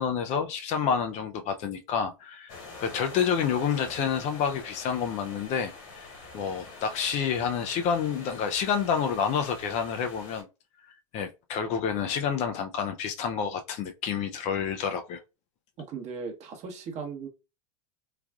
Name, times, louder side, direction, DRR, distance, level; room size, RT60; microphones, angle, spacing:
voice 1, 0.0-10.5 11.1-15.2, left 7 dB, 40° left, 0.4 m, -29 dB
sound 1, 2.5-10.4, left 3 dB, 60° left, 1.7 m, -45 dB
voice 2, 15.8-17.3, right 5 dB, 40° right, 0.9 m, -37 dB
3.2 x 2.3 x 2.3 m
hypercardioid pair, 100°, 18 cm